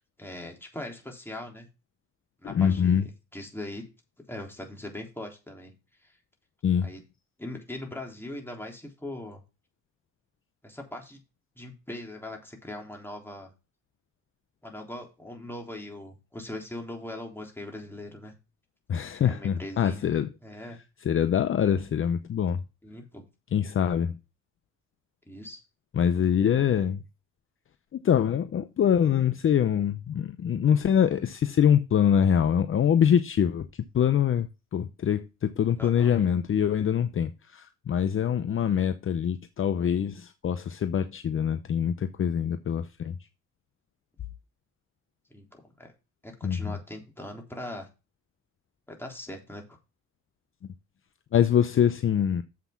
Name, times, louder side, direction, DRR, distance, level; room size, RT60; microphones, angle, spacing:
voice 1, 0.2-1.7 2.4-3.8 4.3-5.7 6.0-6.2 6.8-7.0 7.4-9.4 10.6-11.2 11.5-13.5 14.6-18.3 19.2-20.0 20.4-20.8 22.8-23.2 25.2-25.6 35.8-36.2 45.3-45.9 46.2-47.9 48.9-49.8, left 1 dB, 5° left, 3.4 m, -40 dB
voice 2, 2.4-3.0 6.6-6.9 18.9-20.3 21.0-22.6 23.5-24.2 25.9-27.0 27.9-33.7 33.9-43.1 46.4-46.7 51.3-52.4, left 8 dB, 45° left, 0.7 m, -24 dB
7.3 x 5.9 x 5.8 m
cardioid pair, 90°, 30 cm